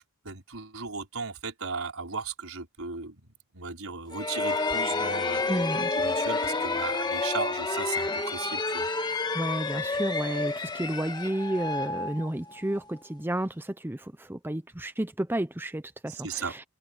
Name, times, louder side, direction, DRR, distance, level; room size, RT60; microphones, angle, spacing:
voice 1, 0.0-5.5 5.8-8.9 16.1-16.6, right 5 dB, 75° right, 5.2 m, -36 dB
sound 1, 4.1-12.8, left 3 dB, 20° left, 1.5 m, -29 dB
voice 2, 5.5-5.9 9.3-16.6, right 1 dB, 10° right, 0.6 m, -31 dB
head